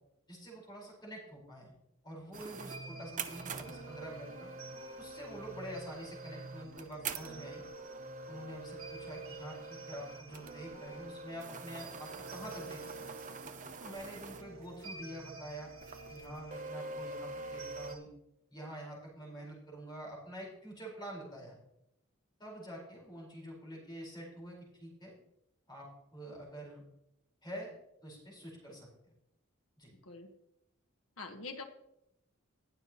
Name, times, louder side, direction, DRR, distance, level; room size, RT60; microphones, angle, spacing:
voice 1, 0.3-1.7 2.0-4.5 5.0-7.6 8.3-13.1 13.8-15.7 16.1-18.1 18.5-21.6 22.4-25.1 25.7-26.8 27.4-27.7 28.0-29.1 29.8-29.9, equal, 20° left, -4 dB, 4.6 m, -47 dB
sound 1, 2.3-14.9 15.2-15.3 15.8-18.0, right 4 dB, 40° right, 0.7 m, -45 dB
sound 2, 2.3-18.0, right 3 dB, 75° right, 1.6 m, -50 dB
voice 2, 31.2-31.6, left 3 dB, 75° left, 4 dB, 1.4 m, -45 dB
20.0 x 6.7 x 3.0 m, 0.82 s
head